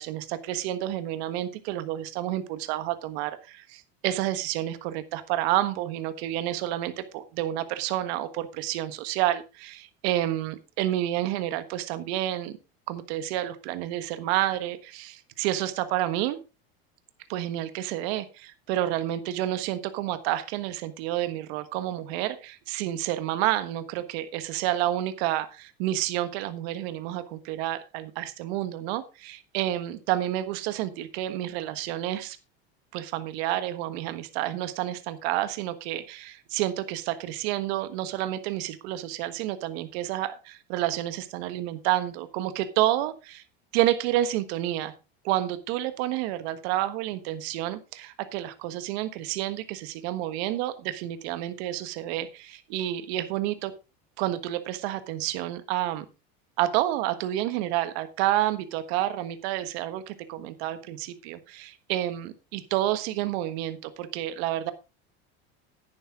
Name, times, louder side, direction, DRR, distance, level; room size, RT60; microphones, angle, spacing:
voice 1, 0.0-12.6 12.9-16.4 17.3-32.4 32.9-43.4 43.7-44.9 45.2-53.7 54.2-56.1 56.6-64.7, right 13 dB, 75° right, 12 dB, 1.4 m, -29 dB
10.5 x 10.0 x 3.7 m, 0.28 s
supercardioid pair, 115°, 33 cm